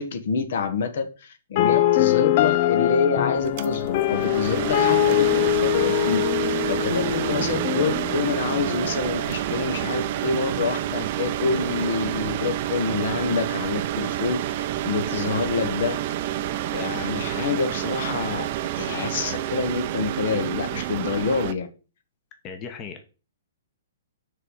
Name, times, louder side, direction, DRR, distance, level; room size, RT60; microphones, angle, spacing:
voice 1, 0.0-16.0 16.7-21.7, left 5 dB, 65° left, 8 dB, 1.4 m, -27 dB
sound 1, 1.6-9.6, left 14 dB, 45° left, 0.5 m, -23 dB
sound 2, 3.4-21.5, right 12 dB, 45° right, 0.6 m, -28 dB
voice 2, 22.4-23.0, left 6 dB, 25° left, 6 dB, 1.2 m, -37 dB
6.6 x 4.0 x 6.3 m, 0.33 s
hypercardioid pair, 145°, 0 cm